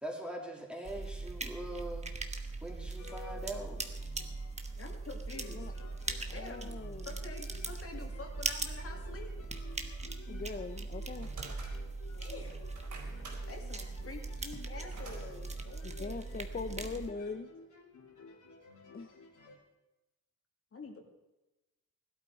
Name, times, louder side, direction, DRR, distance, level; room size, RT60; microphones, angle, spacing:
voice 1, 0.0-2.1 2.6-3.8, right 1 dB, 5° right, 0 dB, 2.7 m, -42 dB
sound 1, 0.8-17.1, right 3 dB, 20° right, 1.2 m, -40 dB
sound 2, 3.0-19.6, left 5 dB, 80° left, 3.3 m, -55 dB
voice 2, 4.7-5.7 6.3-6.7 7.0-9.3 12.2-12.6 13.5-17.0 20.7-21.1, left 3 dB, 50° left, 2 dB, 2.4 m, -47 dB
voice 3, 6.2-7.1 10.3-11.3 15.8-17.5 18.9-19.2, left 4 dB, 30° left, 8 dB, 0.7 m, -41 dB
sound 3, 10.8-12.2 12.6-15.2, right 3 dB, 85° right, 4.1 m, -48 dB
17.0 x 12.0 x 4.8 m, 1.0 s
wide cardioid pair, 135°, 30 cm